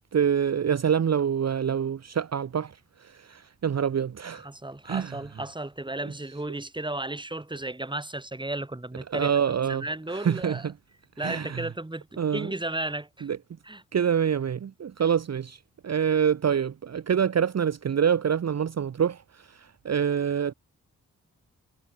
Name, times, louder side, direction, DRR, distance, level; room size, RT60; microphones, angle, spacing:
voice 1, 0.1-2.7 3.0-4.5 4.8-5.2 9.1-9.8 10.1-10.7 11.2-11.7 12.2-12.5 13.2-13.4 13.9-20.5, right 8 dB, 50° right, 0.8 m, -26 dB
voice 2, 4.3-9.3 9.7-10.7 11.2-13.3 13.6-13.8, right 2 dB, 15° right, 1.9 m, -34 dB
cardioid pair, 45°, 34 cm